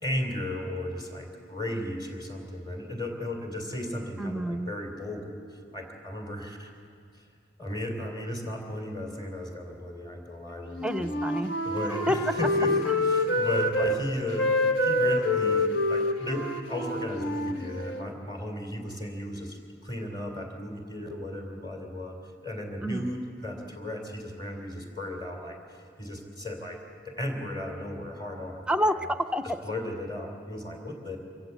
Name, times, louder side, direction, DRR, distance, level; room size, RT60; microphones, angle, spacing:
voice 1, 0.0-6.7 7.6-11.2 11.6-28.7 29.6-31.2, left 1 dB, 25° left, 2 dB, 3.3 m, -35 dB
voice 2, 4.2-4.7 10.8-11.5 11.9-12.2 12.9-13.0 22.8-23.1 28.7-29.4, equal, 5° right, 11 dB, 0.6 m, -28 dB
Wind instrument woodwind instrument, 10.7-14.0 14.3-18.1, left 1 dB, 70° left, 1.4 m, -27 dB
25.5 x 15.5 x 8.2 m, 2.3 s
head